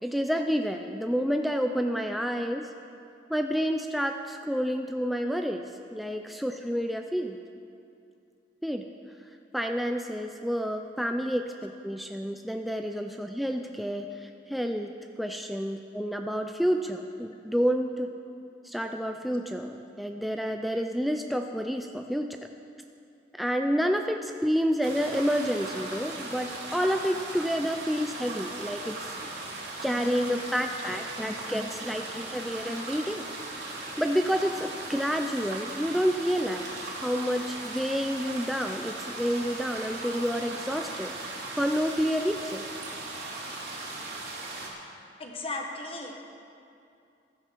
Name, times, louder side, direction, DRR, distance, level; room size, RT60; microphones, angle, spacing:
voice 1, 0.0-2.7 3.3-7.4 8.6-8.9 9.5-14.9 15.2-18.1 18.6-22.4 23.3-29.0 29.5-33.2 34.0-36.7 37.0-42.6, equal, ahead, 4 dB, 0.4 m, -29 dB
sound 1, 24.8-44.7, right 2 dB, 60° right, 2.9 m, -38 dB
voice 2, 45.2-46.1, left 2 dB, 30° left, 1 dB, 1.5 m, -35 dB
15.0 x 13.0 x 4.6 m, 2.6 s
head